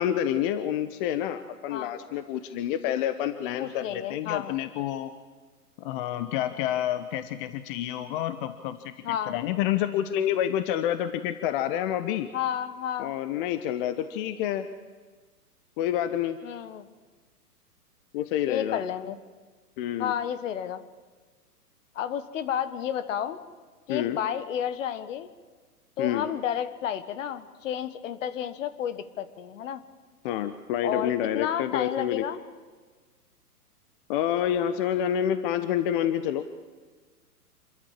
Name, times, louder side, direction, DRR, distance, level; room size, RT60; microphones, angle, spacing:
voice 1, 0.0-5.1 5.8-12.3 13.0-14.7 15.8-16.4 18.1-18.8 19.8-20.1 23.9-24.2 26.0-26.3 30.2-32.2 34.1-36.4, left 10 dB, 35° left, 11 dB, 1.0 m, -28 dB
voice 2, 3.5-4.5 9.0-9.3 12.3-13.1 16.4-16.9 18.5-19.2 20.0-20.8 21.9-23.4 23.9-25.3 26.0-29.8 30.8-32.4, left 9 dB, 55° left, 13 dB, 1.7 m, -31 dB
27.5 x 13.5 x 7.5 m, 1.4 s
hypercardioid pair, 120°, 47 cm